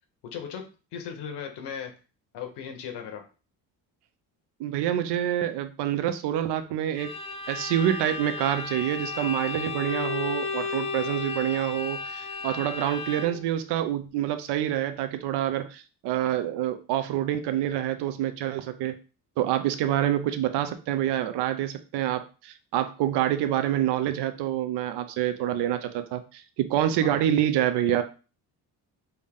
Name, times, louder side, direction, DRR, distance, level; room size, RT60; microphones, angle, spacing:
voice 1, 0.3-0.6 0.9-1.9 2.3-3.2 27.0-27.2, left 7 dB, 80° left, 4 dB, 0.8 m, -37 dB
voice 2, 4.6-7.1 7.5-18.9 19.4-28.0, right 11 dB, 80° right, 9 dB, 0.5 m, -27 dB
Bowed string instrument, 7.0-13.5, left 4 dB, 15° left, 0.3 m, -33 dB
3.5 x 2.6 x 3.4 m, 0.34 s
cardioid pair, 165°, 40 cm